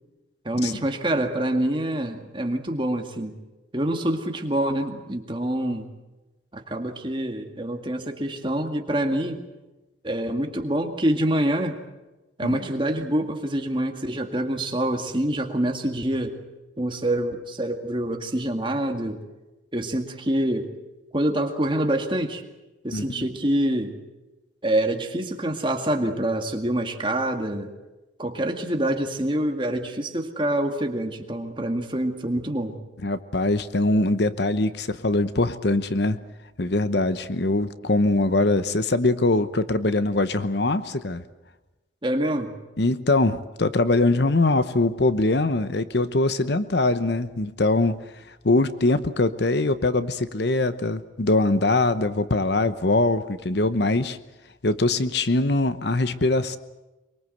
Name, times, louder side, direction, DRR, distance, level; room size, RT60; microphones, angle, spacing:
voice 1, 0.4-3.3 3.7-5.9 6.5-9.4 10.0-11.8 12.4-16.4 16.8-19.2 19.7-20.7 21.1-22.4 22.8-23.9 24.6-27.7 28.2-32.8 42.0-42.5, right 1 dB, 25° right, 4 dB, 2.1 m, -26 dB
voice 2, 22.9-23.2 33.0-36.2 36.6-41.2 42.8-48.0 48.4-54.2 54.6-56.6, left 2 dB, 60° left, 12 dB, 0.9 m, -22 dB
23.5 x 23.0 x 7.9 m, 1.1 s
head